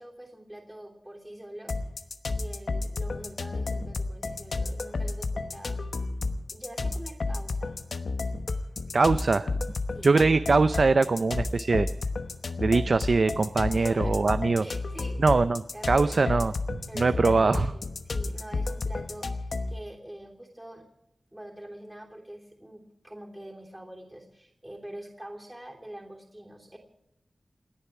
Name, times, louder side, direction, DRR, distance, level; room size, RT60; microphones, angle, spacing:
voice 1, 0.0-1.7 2.3-5.9 6.5-7.8 9.9-10.1 13.7-14.1 14.6-16.3 16.9-20.9 21.3-26.8, right 1 dB, 10° right, -1 dB, 3.0 m, -45 dB
sound 1, 1.7-19.8, left 3 dB, 65° left, 1.0 m, -32 dB
voice 2, 8.9-9.5 10.0-11.9 12.6-14.6 15.2-15.6 15.9-17.7, right 3 dB, 55° right, 11 dB, 0.5 m, -22 dB
28.5 x 10.0 x 4.9 m, 0.87 s
wide cardioid pair, 115°, 0 cm